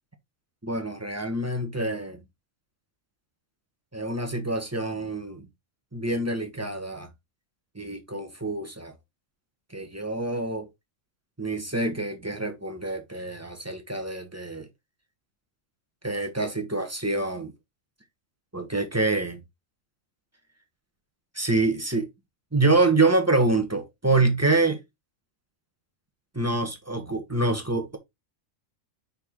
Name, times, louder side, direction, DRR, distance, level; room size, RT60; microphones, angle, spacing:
voice 1, 0.6-2.2 3.9-5.5 5.9-7.1 7.7-8.9 9.7-10.7 11.4-14.7 16.0-17.5 18.5-19.4 21.3-22.1 22.5-24.8 26.3-28.0, right 2 dB, 10° right, 1.3 m, -26 dB
5.3 x 4.5 x 4.5 m
omnidirectional pair, 1.4 m